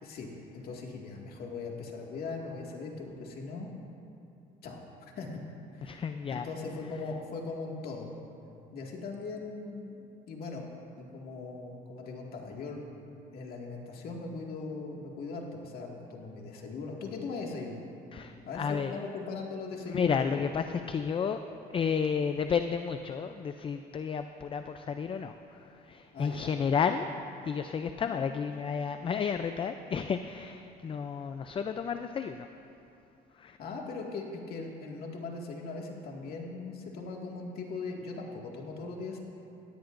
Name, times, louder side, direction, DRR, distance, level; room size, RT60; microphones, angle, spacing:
voice 1, 0.5-3.8 4.6-4.8 5.2-5.4 5.7-6.0 6.3-8.1 8.7-10.6 11.0-12.8 13.3-17.8 18.5-20.4 26.1-26.5 28.1-28.2 33.6-39.2, left 3 dB, 65° left, -1 dB, 2.0 m, -39 dB
voice 2, 5.8-6.5 6.8-7.0 18.1-19.0 19.9-21.4 21.7-27.1 27.4-32.5 33.3-33.6, left 6 dB, 30° left, 8 dB, 0.4 m, -32 dB
17.0 x 16.5 x 2.6 m, 2.8 s
cardioid pair, 110°, 17 cm